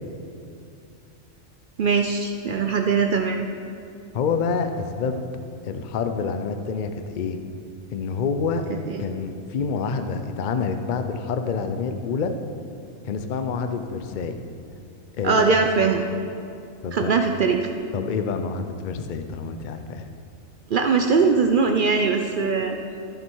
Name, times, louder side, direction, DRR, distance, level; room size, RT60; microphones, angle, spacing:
voice 1, 1.8-3.5 8.9-9.0 15.2-16.1 16.9-17.7 20.7-22.8, right 5 dB, 65° right, 5 dB, 0.5 m, -21 dB
voice 2, 4.1-5.3 5.6-7.4 7.9-8.7 9.0-12.3 13.0-14.4 15.2-15.5 16.8-17.1 17.9-20.1, left 5 dB, 50° left, 8 dB, 0.5 m, -27 dB
14.5 x 6.7 x 4.6 m, 2.5 s
omnidirectional pair, 1.4 m